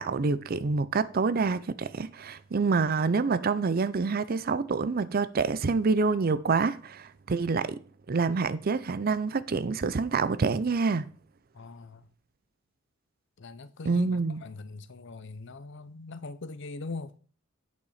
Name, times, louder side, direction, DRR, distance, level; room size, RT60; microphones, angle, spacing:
voice 1, 0.0-7.8 8.1-11.1 13.8-14.4, right 4 dB, 45° right, 0.5 m, -27 dB
voice 2, 11.5-12.0 13.4-14.1 14.4-17.1, left 3 dB, 60° left, 0.7 m, -41 dB
8.5 x 6.8 x 4.9 m
head